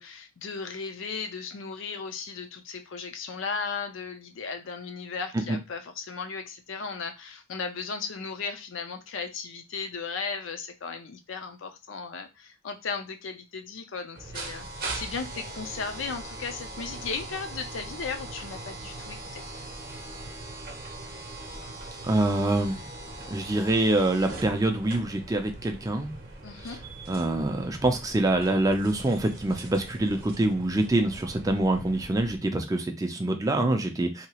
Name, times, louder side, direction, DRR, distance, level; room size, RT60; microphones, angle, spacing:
voice 1, 0.0-19.4 26.4-26.8, left 5 dB, 70° left, 7 dB, 0.5 m, -36 dB
sound 1, 14.1-32.4, right 2 dB, 45° right, 0.7 m, -41 dB
voice 2, 22.0-22.9 23.3-26.1 27.1-34.3, right 1 dB, 15° right, 5 dB, 0.4 m, -25 dB
2.8 x 2.3 x 2.9 m, 0.25 s
head